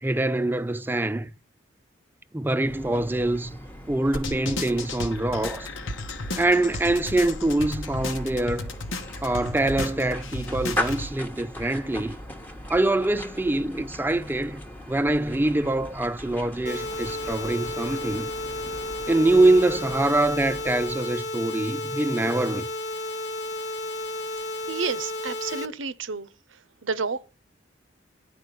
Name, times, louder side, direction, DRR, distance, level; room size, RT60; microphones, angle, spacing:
voice 1, 0.0-1.3 2.3-3.6 3.9-5.7 6.3-8.7 9.2-12.2 12.7-18.3 19.1-22.7, right 2 dB, 10° right, 0.4 m, -24 dB
sound 1, 2.6-21.3, left 1 dB, 10° left, 0.9 m, -39 dB
sound 2, 4.1-11.1, left 2 dB, 85° left, 1.2 m, -34 dB
sound 3, 16.7-25.7, left 2 dB, 60° left, 1.0 m, -32 dB
voice 2, 24.7-26.3 26.8-27.3, right 5 dB, 80° right, 0.7 m, -30 dB
10.5 x 4.8 x 6.8 m
head